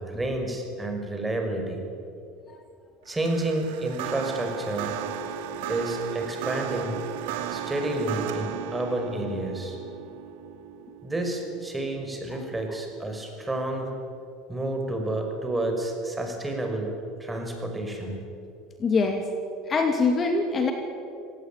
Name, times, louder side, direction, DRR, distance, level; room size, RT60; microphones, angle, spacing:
voice 1, 0.0-1.8 3.1-4.9 5.7-7.0 7.5-9.8 11.0-13.9 14.5-16.9 17.2-18.2, right 1 dB, 10° right, 3 dB, 5.7 m, -30 dB
sound 1, 3.1-12.4, right 9 dB, 80° right, 2.7 m, -35 dB
voice 2, 18.8-19.3 19.7-20.7, left 4 dB, 30° left, 4 dB, 2.7 m, -23 dB
25.5 x 18.5 x 9.2 m, 2.6 s
supercardioid pair, 115°, 0 cm